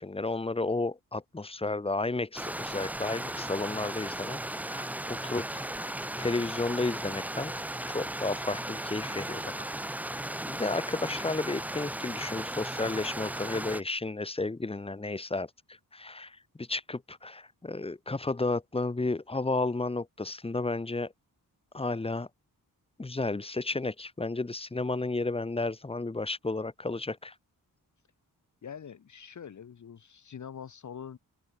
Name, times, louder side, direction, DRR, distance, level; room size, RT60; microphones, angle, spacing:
voice 1, 0.0-4.4 4.7-5.9 6.2-7.5 7.9-9.7 10.5-15.5 15.9-21.1 21.7-22.3 23.0-27.3, left 3 dB, 15° left, 1.2 m, -32 dB
Stream, 2.4-13.8, right 1 dB, 5° right, 0.5 m, -36 dB
voice 2, 28.6-31.2, left 7 dB, 55° left, 1.4 m, -44 dB
open air
wide cardioid pair, 130°, 36 cm